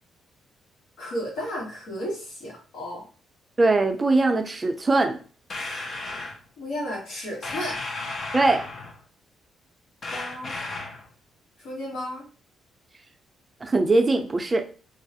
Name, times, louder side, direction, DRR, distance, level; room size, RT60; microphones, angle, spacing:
voice 1, 1.0-3.1 6.6-7.8 10.1-10.5 11.6-12.2, equal, 80° left, -3 dB, 1.1 m, -33 dB
voice 2, 3.6-5.2 8.3-8.7 13.6-14.6, right 2 dB, 25° right, 5 dB, 0.5 m, -21 dB
sound 1, 5.5-6.4 7.4-9.0 10.0-11.1, left 2 dB, 50° left, 0.5 m, -34 dB
2.3 x 2.0 x 2.8 m, 0.38 s
cardioid pair, 90°, 0 cm